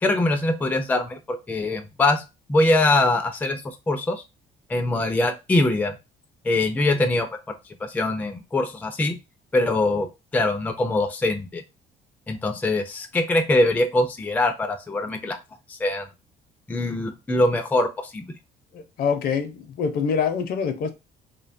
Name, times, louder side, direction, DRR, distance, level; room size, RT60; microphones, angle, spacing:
voice 1, 0.0-2.2 2.5-4.2 4.7-5.9 6.4-7.3 7.8-9.2 9.5-10.1 10.3-11.6 12.3-15.4 15.7-16.1 16.7-18.3, left 2 dB, 10° left, 0.3 m, -23 dB
voice 2, 18.7-20.9, left 6 dB, 65° left, 0.5 m, -25 dB
2.7 x 2.2 x 2.5 m
cardioid pair, 110°, 17 cm